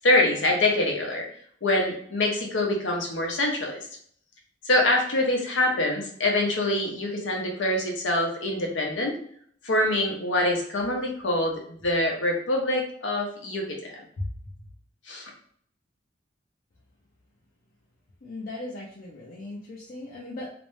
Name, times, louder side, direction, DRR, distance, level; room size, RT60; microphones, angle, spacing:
voice 1, 0.0-1.3 1.6-3.9 4.6-9.2 9.6-14.2 15.1-15.3, left 1 dB, 85° left, 1 dB, 0.7 m, -25 dB
voice 2, 18.2-20.5, left 2 dB, 50° left, -5 dB, 0.5 m, -38 dB
2.5 x 2.1 x 3.0 m, 0.62 s
head